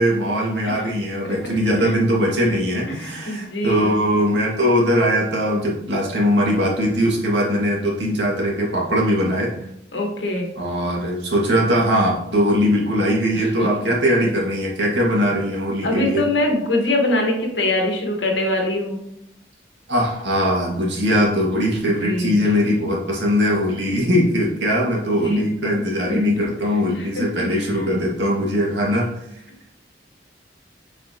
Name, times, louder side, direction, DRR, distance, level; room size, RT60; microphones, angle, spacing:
voice 1, 0.0-9.5 10.6-16.3 19.9-29.1, equal, 80° right, -3 dB, 2.0 m, -20 dB
voice 2, 2.9-4.0 9.9-10.5 13.3-13.7 15.8-19.0 22.0-22.4 25.2-25.5 26.1-26.2 27.0-27.1 27.6-27.7, left 1 dB, 85° left, 1 dB, 1.6 m, -23 dB
7.5 x 4.4 x 3.0 m, 0.79 s
head